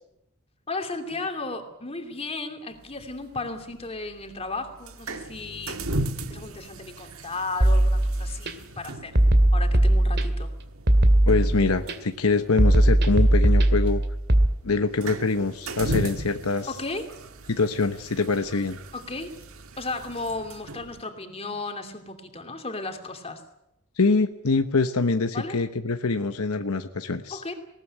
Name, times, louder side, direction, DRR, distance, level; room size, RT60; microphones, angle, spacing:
voice 1, 0.7-5.9 6.3-9.2 9.5-10.5 16.7-17.1 18.9-19.4 19.8-23.4 25.3-25.6 27.3-27.5, left 3 dB, 25° left, 6 dB, 2.8 m, -34 dB
sound 1, 2.8-21.0, right 2 dB, 70° right, 1.6 m, -38 dB
sound 2, 7.6-8.5 9.2-10.5 10.9-11.9 12.6-14.5, right 1 dB, 50° right, 2.3 m, -19 dB
voice 2, 11.3-14.0 14.6-16.7 17.5-18.8 24.0-27.4, left 3 dB, 75° left, 8 dB, 1.0 m, -24 dB
20.0 x 18.5 x 10.0 m, 0.84 s
head